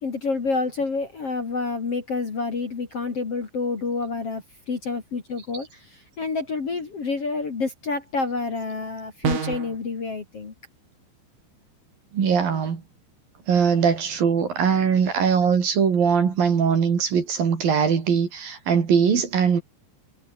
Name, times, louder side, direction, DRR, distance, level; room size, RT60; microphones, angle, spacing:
voice 1, 0.0-10.5, left 4 dB, 35° left, 3.2 m, -28 dB
sound 1, 9.2-9.8, right 6 dB, 85° right, 7.8 m, -26 dB
voice 2, 12.1-12.8 13.5-19.6, right 6 dB, 50° right, 4.8 m, -21 dB
omnidirectional pair, 5.4 m